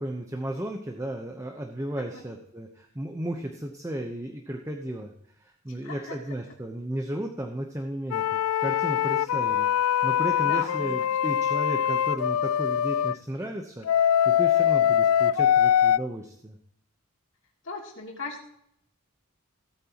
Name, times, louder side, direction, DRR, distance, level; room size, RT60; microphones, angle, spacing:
voice 1, 0.0-5.1 5.4-16.6, right 1 dB, 15° right, 2 dB, 0.9 m, -34 dB
voice 2, 5.7-6.4 9.3-9.4 10.4-11.3 17.6-18.5, left 3 dB, 60° left, 0 dB, 3.0 m, -40 dB
sound 1, 8.1-13.1 13.9-16.0, left 10 dB, 80° left, 0.3 m, -23 dB
17.5 x 8.9 x 3.0 m, 0.72 s
head